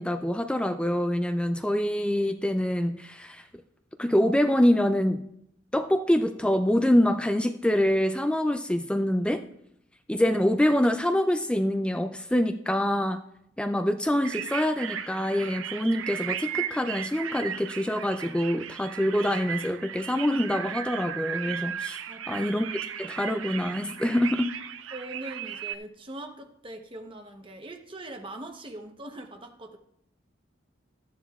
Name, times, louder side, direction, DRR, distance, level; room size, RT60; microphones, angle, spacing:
voice 1, 0.0-3.4 4.0-5.2 5.7-9.4 10.1-13.2 13.6-22.0 22.3-24.5, left 1 dB, 5° left, 8 dB, 0.3 m, -25 dB
sound 1, 14.2-25.7, right 9 dB, 85° right, 0.6 m, -36 dB
voice 2, 22.1-22.5 24.9-29.8, right 1 dB, 25° right, 4 dB, 0.9 m, -41 dB
14.0 x 10.0 x 2.4 m, 0.75 s
head